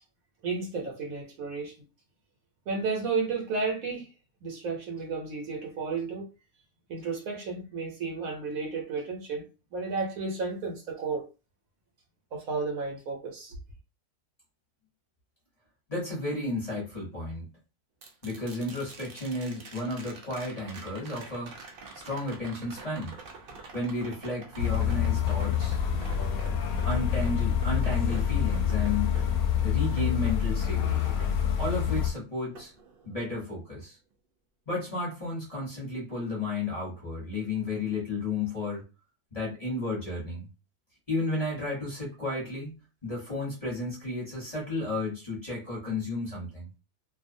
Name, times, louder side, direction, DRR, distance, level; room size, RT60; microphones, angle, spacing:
voice 1, 0.4-1.7 2.7-4.1 4.4-6.3 6.9-11.2 12.3-13.6, right 4 dB, 70° right, 1.1 m, -32 dB
voice 2, 15.9-17.5 18.2-21.5 21.9-23.1 23.7-25.8 26.8-29.1 29.6-31.2 31.6-32.7 33.0-34.0 34.7-38.8 39.3-40.5 41.1-42.8 43.0-46.7, left 2 dB, 25° left, 1.0 m, -33 dB
sound 1, 18.0-32.1 32.5-33.6 35.8-35.9, right 4 dB, 90° right, 0.4 m, -48 dB
sound 2, 24.6-32.1, left 9 dB, 75° left, 1.0 m, -27 dB
2.6 x 2.3 x 2.5 m
omnidirectional pair, 1.7 m